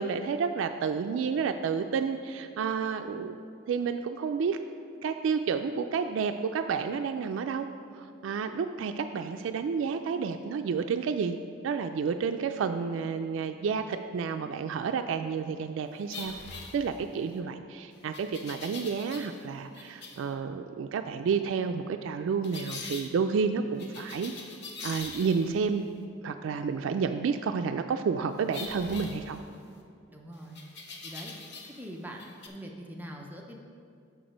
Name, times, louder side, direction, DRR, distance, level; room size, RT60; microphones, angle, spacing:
voice 1, 0.0-4.6 5.0-7.7 8.0-11.4 11.6-16.3 16.7-24.3 24.8-25.9 26.2-29.4, right 5 dB, 85° right, 7 dB, 0.3 m, -30 dB
sound 1, 16.1-17.3 18.1-19.5 19.7-20.3 22.4-23.1 23.8-25.6 28.5-29.8 30.5-31.9 32.1-32.5, left 3 dB, 60° left, 0.8 m, -43 dB
voice 2, 30.1-30.6 31.0-31.3 31.7-32.2 32.5-33.5, equal, 10° right, 0 dB, 0.5 m, -43 dB
6.7 x 6.0 x 5.1 m, 2.4 s
head